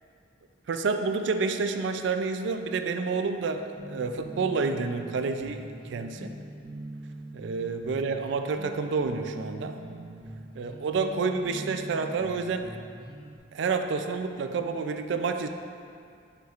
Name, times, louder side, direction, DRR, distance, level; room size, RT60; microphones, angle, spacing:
voice 1, 0.7-6.4 7.3-9.8 10.6-12.8 13.5-15.5, right 4 dB, 60° right, 7 dB, 0.3 m, -29 dB
sound 1, 3.8-13.4, right 1 dB, 25° right, 0.7 m, -42 dB
9.1 x 4.4 x 2.4 m, 2.4 s
head